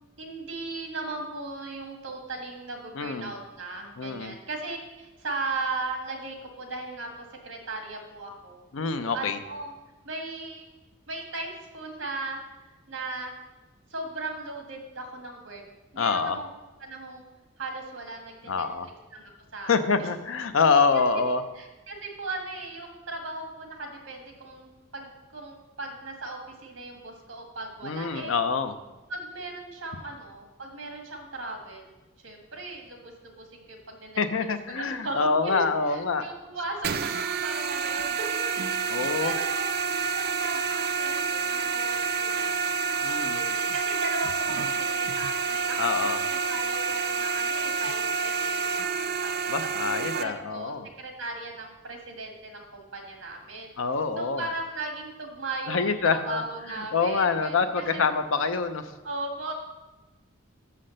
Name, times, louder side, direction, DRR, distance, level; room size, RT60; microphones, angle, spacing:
voice 1, 0.2-7.1 7.4-8.6 9.1-9.7 10.0-10.7 11.1-12.4 12.9-13.3 13.9-15.6 15.9-16.5 16.8-17.2 17.6-20.1 20.9-21.3 21.5-28.4 29.1-31.9 32.2-34.2 34.7-35.6 35.9-42.9 43.3-49.5 49.8-53.7 54.2-58.0 59.0-59.5, right 2 dB, 65° right, 2 dB, 1.6 m, -37 dB
voice 2, 2.9-3.3 4.0-4.3 8.7-9.4 16.0-16.4 18.5-18.9 19.6-21.4 27.8-28.7 34.2-36.2 38.9-39.3 43.0-43.4 45.8-46.2 49.5-50.9 53.8-54.5 55.7-56.4 56.9-58.9, left 5 dB, 70° left, 10 dB, 0.6 m, -26 dB
sound 1, 36.8-50.2, right 5 dB, 45° right, 0.4 m, -28 dB
6.3 x 5.8 x 6.5 m, 1.1 s
head